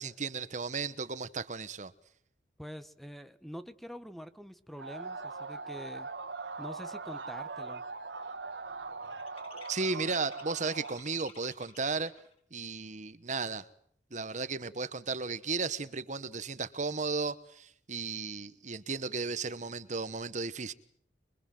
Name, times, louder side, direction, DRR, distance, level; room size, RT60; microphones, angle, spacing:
voice 1, 0.0-1.9 9.7-12.1 12.5-13.6 14.1-20.7, right 4 dB, 45° right, 1.2 m, -35 dB
voice 2, 2.6-6.1 6.6-7.9, equal, ahead, 1.1 m, -45 dB
sound 1, 4.8-11.0, right 4 dB, 80° right, 1.9 m, -41 dB
sound 2, 7.2-7.4 7.7-12.3, left 4 dB, 35° left, 6.9 m, -54 dB
25.0 x 24.0 x 7.8 m
head